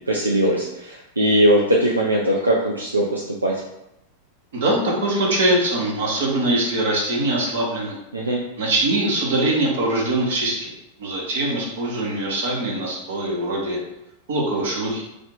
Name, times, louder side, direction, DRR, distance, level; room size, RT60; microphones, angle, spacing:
voice 1, 0.1-3.5 8.1-8.4, right 1 dB, 80° right, -2 dB, 0.5 m, -20 dB
voice 2, 4.5-8.0 8.6-10.7 11.0-13.8 14.3-15.0, right 2 dB, 60° right, -2 dB, 1.1 m, -22 dB
3.3 x 2.7 x 3.9 m, 0.87 s
figure-of-eight pair, 90°, 0 cm